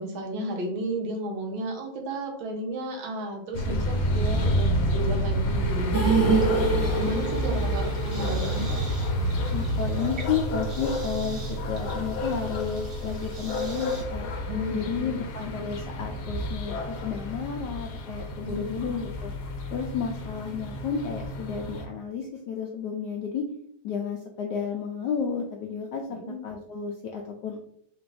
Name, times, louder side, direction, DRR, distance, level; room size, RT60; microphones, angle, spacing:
voice 1, 0.0-8.7 14.5-15.0 18.4-18.6 26.1-26.4, right 1 dB, 75° right, 2 dB, 1.6 m, -33 dB
sound 1, 3.5-21.8, equal, 60° left, 1.2 m, -29 dB
sound 2, 5.9-10.1 10.3-10.4 10.8-10.9, right 4 dB, 10° right, 1.2 m, -27 dB
sound 3, 6.0-14.0, right 3 dB, 45° right, 1.1 m, -46 dB
voice 2, 9.5-14.3 14.7-19.3 19.7-23.5 23.8-26.2 26.4-27.6, left 6 dB, 80° left, 2 dB, 0.9 m, -32 dB
3.9 x 2.5 x 4.6 m, 0.67 s
omnidirectional pair, 2.3 m